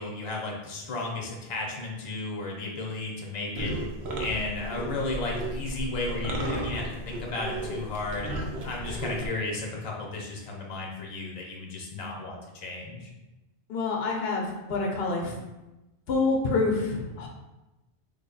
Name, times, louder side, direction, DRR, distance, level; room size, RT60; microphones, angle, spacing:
voice 1, 0.0-3.7 4.2-8.3 8.6-13.1, left 2 dB, 40° left, -1 dB, 0.6 m, -34 dB
sound 1, 3.5-9.3, right 1 dB, 80° right, 0.9 m, -34 dB
voice 2, 13.7-15.3 16.1-17.3, left 3 dB, 70° left, 0 dB, 0.8 m, -27 dB
3.4 x 2.2 x 3.8 m, 1.0 s
omnidirectional pair, 1.1 m